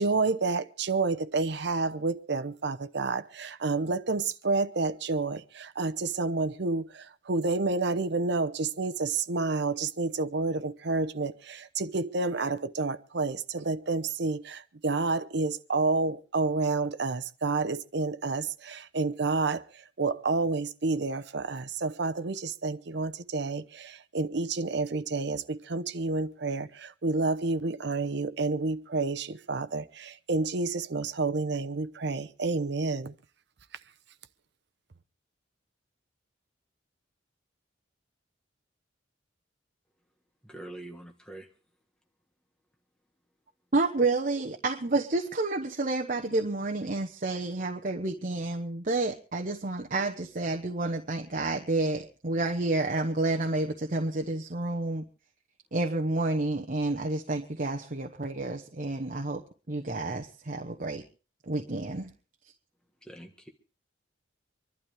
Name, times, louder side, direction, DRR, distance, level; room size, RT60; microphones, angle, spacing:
voice 1, 0.0-19.6 20.0-33.1, right 3 dB, 60° right, 0.8 m, -29 dB
voice 2, 40.4-41.5 63.0-63.5, right 1 dB, 5° left, 1.5 m, -44 dB
voice 3, 43.7-55.0 55.7-61.0 61.5-62.1, right 2 dB, 45° right, 1.0 m, -30 dB
25.5 x 12.0 x 3.4 m
head